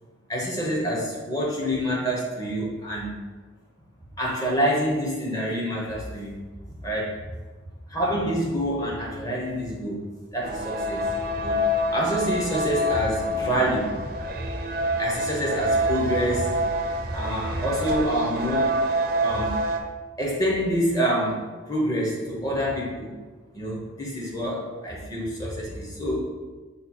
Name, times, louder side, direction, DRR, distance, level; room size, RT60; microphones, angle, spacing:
voice 1, 0.3-3.1 4.2-6.4 6.8-7.2 7.9-10.0 10.3-11.1 11.4-11.6 11.9-14.1 14.4-14.5 15.0-16.5 17.1-18.7 19.2-19.5 20.2-21.4 21.7-23.1 23.5-26.2, equal, 20° left, -4 dB, 0.9 m, -27 dB
sound 1, 10.4-19.8, equal, 50° right, 0.4 m, -27 dB
5.3 x 2.3 x 4.3 m, 1.3 s
head